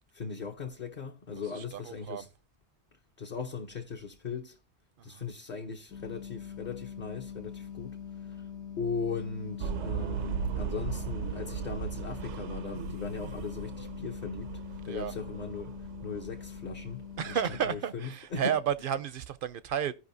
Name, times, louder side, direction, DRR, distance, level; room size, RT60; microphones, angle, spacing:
voice 1, 0.1-2.3 3.2-4.6 5.0-7.9 8.2-8.5 8.8-14.5 14.8-15.8 16.0-17.4 17.7-18.6, left 5 dB, 45° left, 0.9 m, -38 dB
voice 2, 1.5-2.3 5.1-5.2 14.8-15.1 17.2-19.9, right 9 dB, 60° right, 0.6 m, -32 dB
sound 1, 5.9-17.8, left 8 dB, 80° left, 1.3 m, -43 dB
sound 2, 9.6-17.6, right 7 dB, 85° right, 0.9 m, -38 dB
15.5 x 5.3 x 2.7 m
omnidirectional pair, 1.1 m